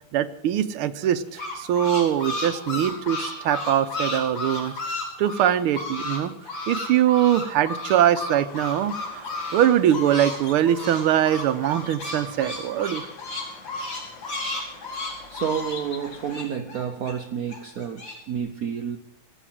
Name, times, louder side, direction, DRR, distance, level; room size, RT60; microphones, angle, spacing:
voice 1, 0.1-4.7 5.2-6.3 6.7-13.0, right 10 dB, 85° right, 11 dB, 1.7 m, -22 dB
sound 1, 1.0-6.2 6.4-10.4 10.6-17.1 17.5-18.1, left 2 dB, 80° left, 6.1 m, -32 dB
sound 2, 8.5-16.4, left 4 dB, 55° left, 2.2 m, -45 dB
voice 2, 15.3-19.0, right 8 dB, 65° right, 7 dB, 0.9 m, -30 dB
17.5 x 7.2 x 9.1 m, 0.86 s
omnidirectional pair, 2.4 m